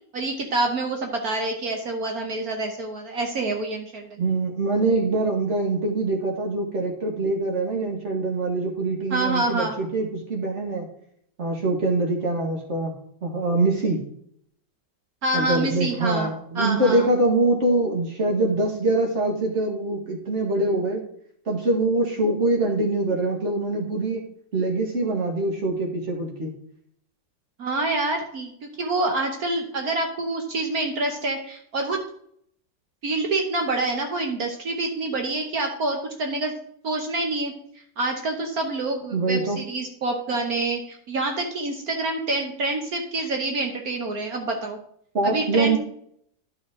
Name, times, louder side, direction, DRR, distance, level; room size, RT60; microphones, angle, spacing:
voice 1, 0.1-4.2 9.1-9.8 15.2-17.1 27.6-32.0 33.0-36.5 36.8-37.5 38.0-44.8 45.2-45.8, right 2 dB, 55° right, 3 dB, 1.4 m, -27 dB
voice 2, 4.2-10.9 11.4-14.0 15.3-21.0 21.5-24.2 24.5-26.6 39.1-39.6 45.1-45.8, right 2 dB, 40° right, 1 dB, 2.1 m, -24 dB
11.5 x 5.7 x 3.7 m, 0.68 s
omnidirectional pair, 2.0 m